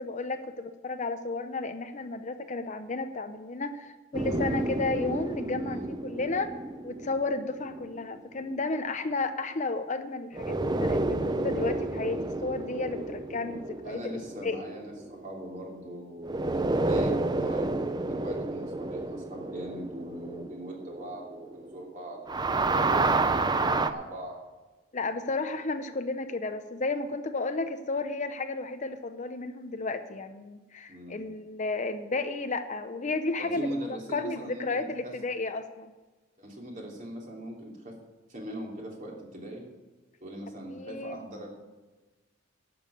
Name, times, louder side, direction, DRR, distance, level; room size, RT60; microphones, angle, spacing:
voice 1, 0.0-6.5 6.8-14.6 24.9-33.7 34.1-35.9 40.7-41.2, left 3 dB, 40° left, 9 dB, 0.6 m, -33 dB
sound 1, 4.1-8.6 10.3-15.8 16.2-21.9 22.2-23.9, right 2 dB, 20° right, 0.5 m, -30 dB
voice 2, 5.6-5.9 13.8-22.2 22.6-24.4 30.9-31.2 33.4-35.1 36.4-38.0 38.3-39.6 40.2-41.5, right 1 dB, 40° right, -1 dB, 3.0 m, -40 dB
11.5 x 7.1 x 8.4 m, 1.2 s
head